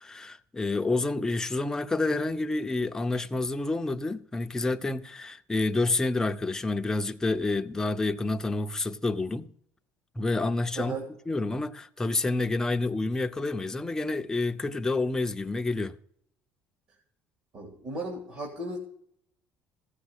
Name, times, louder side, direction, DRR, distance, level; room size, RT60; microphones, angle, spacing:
voice 1, 0.0-9.5 10.2-10.9 11.3-16.0, left 2 dB, 10° left, 0.6 m, -28 dB
voice 2, 10.7-11.1 17.5-18.8, right 2 dB, 40° right, 2.8 m, -35 dB
15.5 x 6.2 x 8.2 m
cardioid pair, 150°, 5 cm